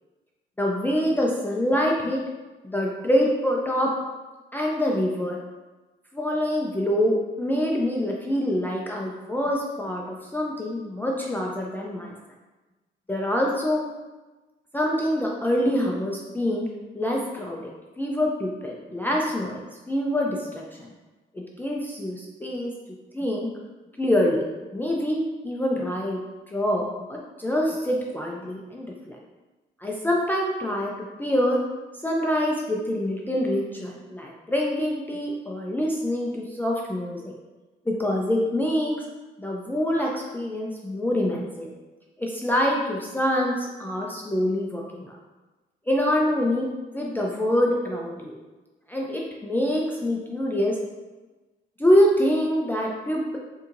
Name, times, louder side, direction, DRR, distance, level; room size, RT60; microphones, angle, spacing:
voice 1, 0.6-2.2 2.6-3.9 4.5-5.4 6.1-12.1 13.1-13.8 14.7-16.7 16.9-19.6 19.9-20.9 21.3-22.7 23.1-23.5 24.0-24.4 24.7-29.2 29.8-30.9 31.2-31.6 32.0-37.3 37.9-38.9 39.4-41.7 42.2-45.2 45.9-46.7 46.9-48.4 48.9-50.8 51.8-53.4, equal, 10° left, -2 dB, 0.4 m, -25 dB
4.2 x 2.7 x 2.5 m, 1.2 s
cardioid pair, 90°, 20 cm